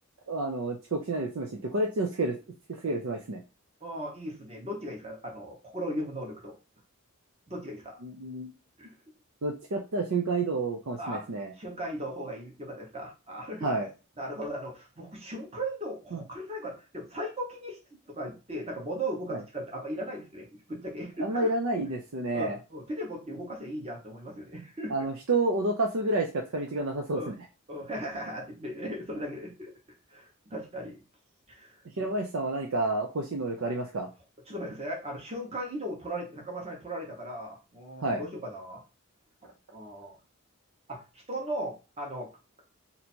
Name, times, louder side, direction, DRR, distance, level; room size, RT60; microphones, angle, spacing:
voice 1, 0.3-2.4 2.8-3.4 8.0-8.5 9.4-11.5 13.6-13.9 16.1-16.2 19.3-19.4 21.2-22.6 24.9-27.3 32.0-34.1 38.0-38.2, right 2 dB, 65° right, 2 dB, 0.5 m, -29 dB
voice 2, 3.8-6.6 7.5-8.0 8.8-8.9 11.0-11.2 11.6-13.7 14.2-17.8 18.1-21.5 22.3-24.9 27.1-27.3 27.7-29.7 30.1-31.0 31.5-32.1 34.5-38.8 39.4-40.2 40.9-41.0 41.3-42.3, right 1 dB, 30° right, -1 dB, 1.2 m, -37 dB
2.8 x 2.7 x 4.3 m, 0.31 s
head